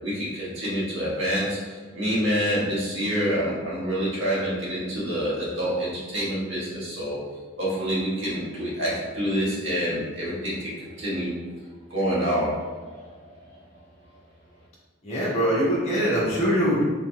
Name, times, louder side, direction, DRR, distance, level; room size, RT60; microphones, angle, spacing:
voice 1, 0.0-7.2 7.6-11.3 11.9-13.4, equal, 70° right, -7 dB, 1.5 m, -27 dB
voice 2, 15.0-16.8, equal, 35° left, -8 dB, 1.2 m, -23 dB
4.3 x 3.7 x 2.2 m, 1.4 s
head